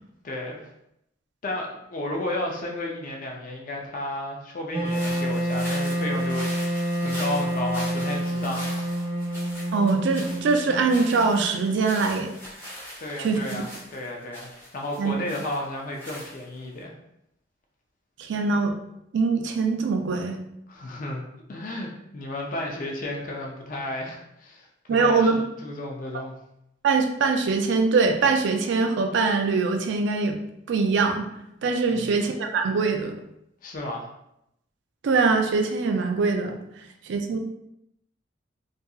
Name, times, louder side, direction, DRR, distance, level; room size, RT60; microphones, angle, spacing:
voice 1, 0.2-0.7 1.4-6.7 7.0-8.7 13.0-16.9 20.7-21.2 21.5-25.3 25.6-26.3 31.9-32.1 33.6-34.1, left 1 dB, 45° left, 0 dB, 0.4 m, -33 dB
Wind instrument woodwind instrument, 4.7-11.7, equal, 30° right, 0.7 m, -28 dB
sound 1, 4.8-16.8, equal, 10° left, 0.9 m, -41 dB
voice 2, 9.7-12.3 13.2-13.6 15.0-15.2 18.2-18.8 19.1-20.4 24.9-25.4 26.8-30.4 30.7-31.3 31.6-33.2 35.0-36.6 37.0-37.4, right 4 dB, 65° right, 4 dB, 0.3 m, -23 dB
2.7 x 2.4 x 2.3 m, 0.80 s
head